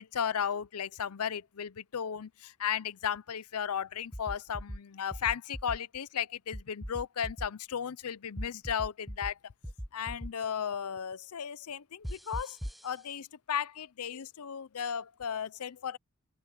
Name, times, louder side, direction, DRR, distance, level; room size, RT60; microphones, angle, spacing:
voice 1, 0.0-9.4 9.9-12.6 12.8-16.0, left 8 dB, 90° left, 0.6 m, -35 dB
sound 1, 4.1-4.8 5.1-5.8 6.5-7.5 8.4-9.3 9.6-10.3 12.0-12.8, equal, ahead, 1.1 m, -39 dB
open air
head